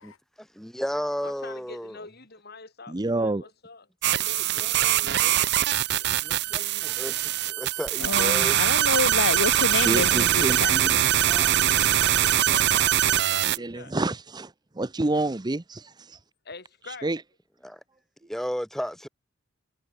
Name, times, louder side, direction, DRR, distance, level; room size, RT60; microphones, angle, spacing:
voice 1, 0.4-2.0 4.6-5.1 6.2-8.7 17.6-17.8 18.3-19.1, equal, ahead, 6.2 m, -34 dB
voice 2, 1.2-6.1 11.9-14.0 16.4-17.1, left 3 dB, 50° left, 7.6 m, -44 dB
voice 3, 2.9-3.4 9.7-10.9 11.3-11.6 13.6-16.2 17.0-17.2, right 2 dB, 20° right, 0.7 m, -29 dB
sound 1, 4.0-13.6, right 12 dB, 55° right, 0.7 m, -22 dB
voice 4, 8.0-10.7, left 4 dB, 70° left, 0.8 m, -28 dB
head